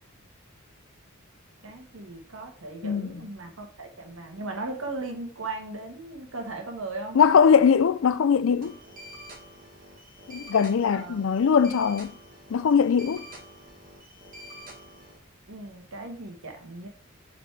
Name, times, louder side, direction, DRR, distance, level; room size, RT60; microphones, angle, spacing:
voice 1, 1.6-7.2 10.9-11.2 15.5-16.9, right 2 dB, 75° right, 1.4 m, -37 dB
voice 2, 7.1-8.8 10.3-12.1 12.5-13.2, left 6 dB, 70° left, 0.4 m, -21 dB
sound 1, 8.6-15.2, equal, 40° right, 1.4 m, -47 dB
7.4 x 4.1 x 3.4 m
head